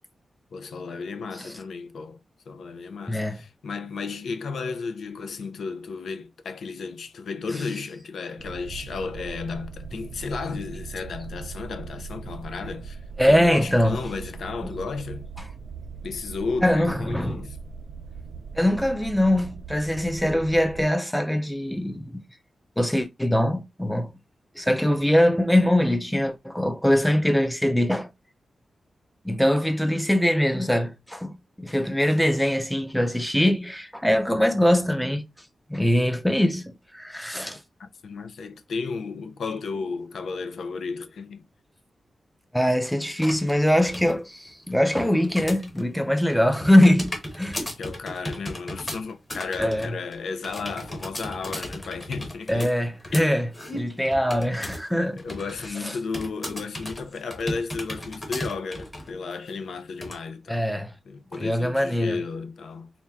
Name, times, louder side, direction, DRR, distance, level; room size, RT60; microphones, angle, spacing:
voice 1, 0.5-2.2 2.5-13.0 13.3-15.3 16.0-17.6 37.8-41.5 47.8-52.7 53.1-53.3 55.2-60.7 61.1-62.9, left 4 dB, 75° left, 0.5 m, -33 dB
voice 2, 3.1-3.4 13.2-14.0 16.6-17.4 18.5-22.2 22.8-24.1 24.6-28.1 29.2-35.3 35.7-37.6 42.5-47.6 49.6-49.9 52.5-55.2 55.8-56.0 60.5-60.9 61.3-62.2, equal, ahead, 0.5 m, -22 dB
sound 1, 8.4-20.9, right 5 dB, 90° right, 0.3 m, -40 dB
sound 2, 43.3-44.1 44.5-45.9 46.2-54.9 55.2-55.7 56.1-59.1 59.5-59.6 60.0-60.2, left 1 dB, 20° left, 1.1 m, -36 dB
4.3 x 2.2 x 3.5 m
wide cardioid pair, 170°, 0 cm